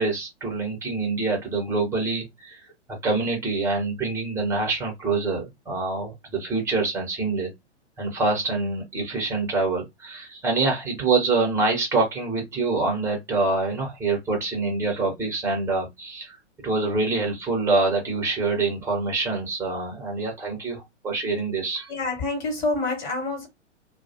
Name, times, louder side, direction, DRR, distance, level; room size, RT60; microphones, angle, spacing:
voice 1, 0.0-2.6 3.0-7.5 8.0-16.4 16.6-21.9, right 3 dB, 10° right, 0.8 m, -25 dB
voice 2, 21.9-23.5, left 2 dB, 40° left, 1.3 m, -27 dB
2.2 x 2.0 x 2.7 m
figure-of-eight pair, 110°, 36 cm